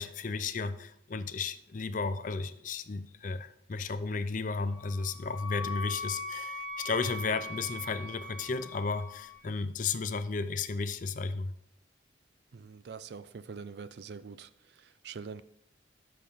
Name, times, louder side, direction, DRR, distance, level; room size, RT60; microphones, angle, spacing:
voice 1, 0.0-11.5, left 4 dB, 45° left, 12 dB, 0.5 m, -34 dB
Wind instrument woodwind instrument, 4.7-9.5, left 3 dB, 10° left, 1.7 m, -41 dB
voice 2, 12.5-15.4, right 5 dB, 60° right, 15 dB, 0.4 m, -44 dB
13.0 x 5.8 x 3.5 m, 0.74 s
head